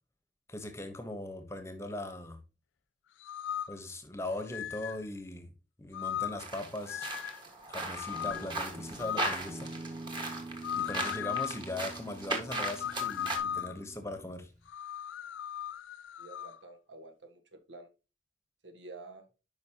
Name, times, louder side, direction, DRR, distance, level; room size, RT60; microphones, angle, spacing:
voice 1, 0.5-2.4 3.7-5.5 5.8-7.1 7.7-9.7 10.7-14.5, left 1 dB, 15° left, 1.0 m, -40 dB
sound 1, 3.2-3.8 4.5-5.0 5.9-6.5 6.9-7.4 7.9-8.5 9.0-9.4 10.6-11.6 12.5-13.8 14.7-16.6, left 10 dB, 85° left, 0.3 m, -37 dB
sound 2, 6.4-13.4, right 2 dB, 25° right, 1.6 m, -38 dB
Guitar, 8.1-14.7, right 2 dB, 40° right, 2.3 m, -46 dB
voice 2, 16.2-17.9 18.6-19.3, right 2 dB, 75° right, 1.5 m, -50 dB
10.5 x 5.2 x 2.9 m
head